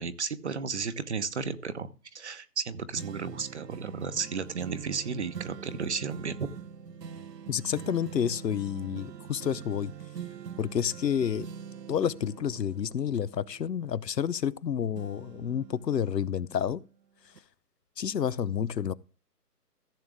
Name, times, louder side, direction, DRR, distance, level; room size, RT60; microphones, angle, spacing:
voice 1, 0.0-6.5, right 5 dB, 45° right, 0.9 m, -33 dB
sound 1, 2.9-14.6 14.9-16.8 17.3-17.4, right 7 dB, 85° right, 0.9 m, -44 dB
voice 2, 7.5-9.9 10.6-11.5 11.9-16.8 18.0-18.9, left 8 dB, 80° left, 0.9 m, -29 dB
15.0 x 7.5 x 3.6 m
hypercardioid pair, 160°, 48 cm